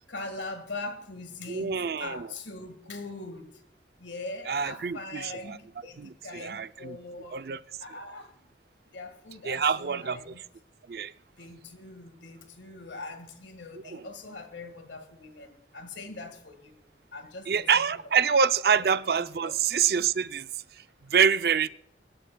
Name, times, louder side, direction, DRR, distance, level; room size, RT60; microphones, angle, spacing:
voice 1, 0.1-3.6 4.0-7.4 7.8-8.4 8.9-10.4 11.4-16.8 17.1-18.0 18.4-18.5 18.7-18.8 19.2-19.5, left 3 dB, 85° left, 1.7 m, -42 dB
voice 2, 1.5-2.3 4.5-5.6 6.0-7.0 7.3-7.6 9.4-10.2 10.9-11.1 13.8-14.1 17.5-20.5 20.7-21.7, right 6 dB, 55° right, 0.4 m, -26 dB
24.0 x 11.5 x 2.2 m
head